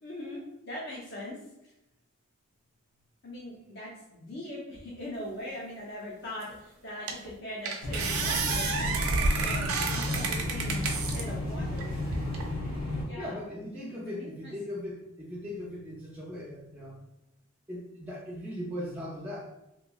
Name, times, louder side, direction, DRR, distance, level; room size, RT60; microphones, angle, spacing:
voice 1, 0.0-1.7 3.2-11.9 13.0-13.4 14.0-14.5, left 1 dB, 50° left, -6 dB, 0.6 m, -41 dB
sound 1, 6.4-6.5 7.1-7.3 7.6-11.2 11.8-12.4, right 4 dB, 75° right, 0.4 m, -30 dB
sound 2, 7.8-13.0, left 1 dB, 75° left, 1.0 m, -33 dB
voice 2, 13.2-17.0 17.7-19.5, left 1 dB, 5° right, -7 dB, 0.4 m, -39 dB
3.0 x 2.6 x 2.2 m, 0.87 s
head